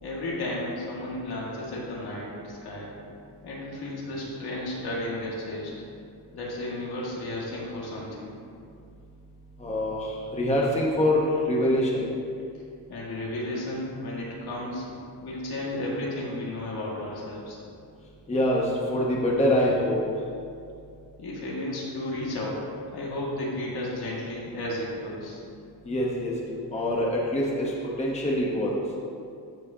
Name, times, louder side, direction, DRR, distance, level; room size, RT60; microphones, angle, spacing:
voice 1, 0.0-2.9 3.4-5.7 6.3-8.3 12.9-14.9 15.2-17.6 21.2-25.4, left 1 dB, 65° left, -4 dB, 2.1 m, -33 dB
voice 2, 9.6-12.0 18.3-20.0 25.8-26.3 26.7-28.8, left 1 dB, 15° left, -3 dB, 1.0 m, -25 dB
15.0 x 5.0 x 2.8 m, 2.4 s
cardioid pair, 130°, 40 cm